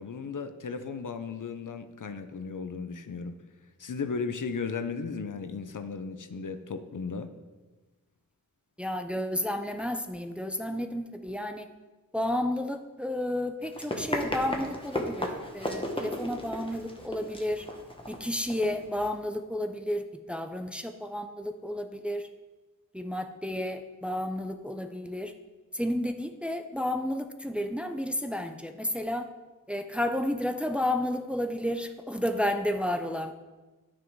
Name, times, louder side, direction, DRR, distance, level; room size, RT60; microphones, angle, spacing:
voice 1, 0.0-3.4 3.8-7.3, left 5 dB, 65° left, 9 dB, 0.7 m, -35 dB
voice 2, 8.8-11.7 12.1-17.7 18.1-22.3 22.9-25.3 25.7-29.3 29.7-33.3, left 1 dB, 5° right, 6 dB, 0.6 m, -31 dB
Run, 13.6-19.1, equal, 15° left, 1.3 m, -35 dB
9.6 x 6.1 x 4.7 m, 1.2 s
wide cardioid pair, 55°, 33 cm